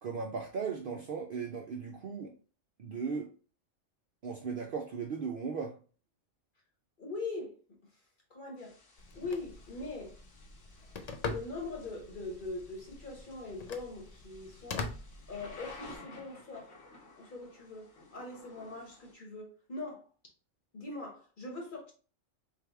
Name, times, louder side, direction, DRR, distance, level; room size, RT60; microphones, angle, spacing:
voice 1, 0.0-2.3 2.8-3.3 4.2-5.8, right 5 dB, 60° right, 0.6 m, -37 dB
voice 2, 7.0-7.8 8.3-8.8 9.1-10.1 11.2-14.9 15.3-16.7 17.2-20.0 20.7-21.9, left 3 dB, 40° left, 1.3 m, -41 dB
Thunder / Rain, 8.6-19.1, left 3 dB, 70° left, 1.5 m, -55 dB
Telephone, 9.0-16.0, left 3 dB, 90° left, 0.3 m, -44 dB
3.7 x 3.3 x 3.4 m
omnidirectional pair, 1.3 m